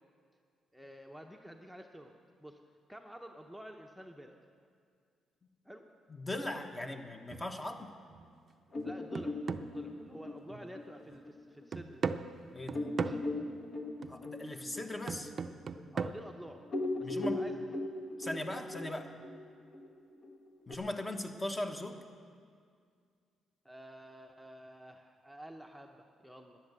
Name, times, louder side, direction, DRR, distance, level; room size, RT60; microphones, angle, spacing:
voice 1, 0.7-2.1 2.4-2.6 2.9-4.4 5.6-5.9 6.9-7.0 8.8-9.4 9.6-12.2 13.0-13.2 15.9-16.6 17.0-17.6 23.6-26.6, equal, ahead, 2 dB, 0.9 m, -50 dB
voice 2, 6.2-7.9 12.5-12.9 14.1-15.3 17.0-17.4 18.2-19.1 20.7-22.0, left 1 dB, 20° left, 5 dB, 1.2 m, -39 dB
sound 1, 7.3-7.6 8.1-8.3 8.8-10.8 11.1-11.2 11.7-13.4 14.0-14.3 15.1-16.1, right 5 dB, 45° right, 0.5 m, -39 dB
sound 2, 8.7-11.8 12.2-12.3 12.7-16.3 16.6-20.7, left 2 dB, 50° left, 1.6 m, -39 dB
13.0 x 10.5 x 8.1 m, 2.1 s
cardioid pair, 90°, 0 cm